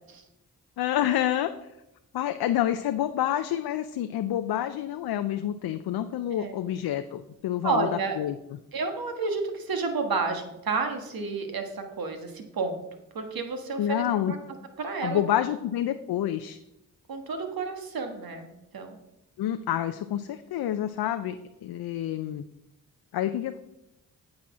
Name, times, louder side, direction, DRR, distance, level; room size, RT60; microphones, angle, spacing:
voice 1, 0.8-1.5 2.1-7.9 8.2-8.4 13.8-14.3 15.0-16.6 19.4-21.4 21.6-22.4 23.1-23.6, left 11 dB, 80° left, 9 dB, 0.5 m, -28 dB
voice 2, 7.6-8.2 8.7-12.8 13.1-14.4 14.8-15.2 17.1-19.0, right 4 dB, 65° right, 5 dB, 1.5 m, -31 dB
8.7 x 4.2 x 6.0 m, 0.87 s
supercardioid pair, 40°, 38 cm